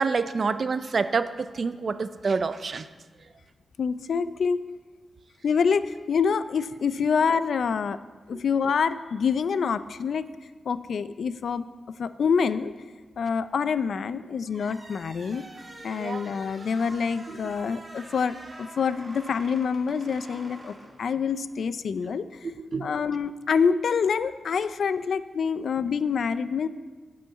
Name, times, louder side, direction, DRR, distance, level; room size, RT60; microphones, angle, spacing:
voice 1, 0.0-2.8 8.3-8.4 15.9-16.2 22.7-22.9, right 4 dB, 40° right, 12 dB, 0.4 m, -27 dB
voice 2, 3.8-4.6 5.4-8.0 8.3-10.3 10.7-12.7 13.2-15.4 15.8-22.3 22.8-26.7, left 6 dB, 60° left, 14 dB, 0.4 m, -26 dB
sound 1, 14.5-21.4, right 1 dB, 20° right, 1.9 m, -46 dB
10.0 x 6.3 x 8.2 m, 1.4 s
wide cardioid pair, 165°, 0 cm